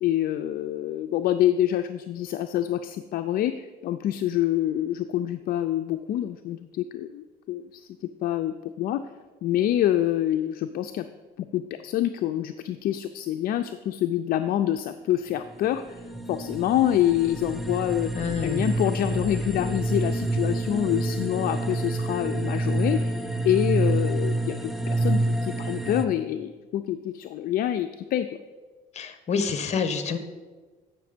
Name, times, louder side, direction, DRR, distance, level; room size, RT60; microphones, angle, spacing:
voice 1, 0.0-9.0 9.4-11.1 11.4-16.0 16.3-18.1 18.4-28.3, left 12 dB, 60° left, 8 dB, 0.4 m, -26 dB
sound 1, 15.4-26.0, right 2 dB, ahead, 0.5 m, -28 dB
voice 2, 18.1-18.6 28.9-30.2, left 5 dB, 40° left, 10 dB, 0.9 m, -27 dB
8.1 x 5.9 x 5.0 m, 1.3 s
cardioid pair, 110°, 17 cm